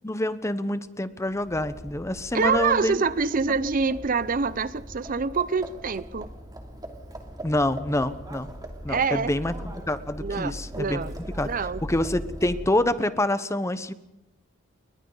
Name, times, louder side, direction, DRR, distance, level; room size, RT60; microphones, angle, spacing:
voice 1, 0.0-3.0 7.4-8.5 8.8-9.5 9.9-11.0 11.4-11.5 11.8-13.9, left 1 dB, 15° left, 13 dB, 0.9 m, -26 dB
Livestock farm animals working animals, 1.3-12.9, right 1 dB, 20° right, 2.8 m, -40 dB
voice 2, 2.3-6.3 8.9-9.3 10.2-11.1 11.4-11.8, right 5 dB, 45° right, 16 dB, 0.6 m, -26 dB
29.0 x 22.5 x 4.0 m, 0.95 s
head